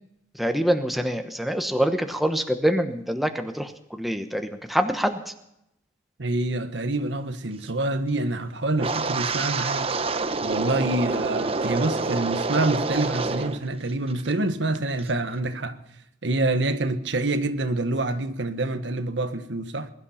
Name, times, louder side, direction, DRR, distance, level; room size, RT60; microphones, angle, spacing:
voice 1, 0.4-5.2, equal, ahead, 1.0 m, -25 dB
voice 2, 6.2-10.0 10.4-15.8 16.2-19.9, right 2 dB, 70° right, 1.3 m, -26 dB
Wind, 8.8-13.6 13.9-14.3 14.7-15.0, right 3 dB, 30° right, 0.8 m, -27 dB
21.5 x 11.5 x 5.7 m
head